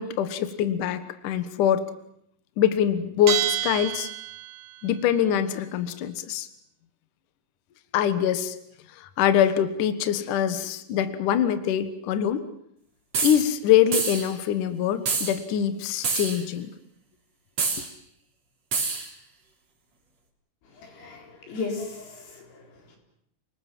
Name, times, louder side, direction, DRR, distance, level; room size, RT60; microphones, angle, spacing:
voice 1, 0.0-1.9 2.6-4.1 4.8-6.5 7.9-8.6 9.0-12.4 13.2-16.7, left 10 dB, 85° left, 11 dB, 1.8 m, -24 dB
Bell, 3.3-4.8, right 14 dB, 70° right, 2.7 m, -29 dB
sound 1, 13.1-13.4 13.9-14.3 15.1-15.3 16.0-16.4 17.6-17.9 18.7-19.1, right 4 dB, 35° right, 4.0 m, -26 dB
voice 2, 20.7-23.0, left 3 dB, 55° left, 2 dB, 6.3 m, -36 dB
30.0 x 19.5 x 7.6 m, 0.73 s
omnidirectional pair, 6.0 m